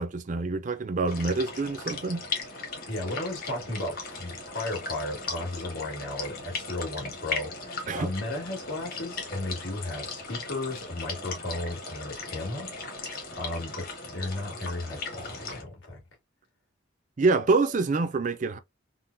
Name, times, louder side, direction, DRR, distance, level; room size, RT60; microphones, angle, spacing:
voice 1, 0.0-2.3 7.9-8.1 17.2-18.6, right 3 dB, 40° right, 0.4 m, -26 dB
sound 1, 1.1-15.6, left 3 dB, 45° left, 1.2 m, -38 dB
voice 2, 2.9-12.7 13.0-16.0, left 2 dB, 75° left, 1.8 m, -35 dB
3.7 x 2.2 x 2.6 m
head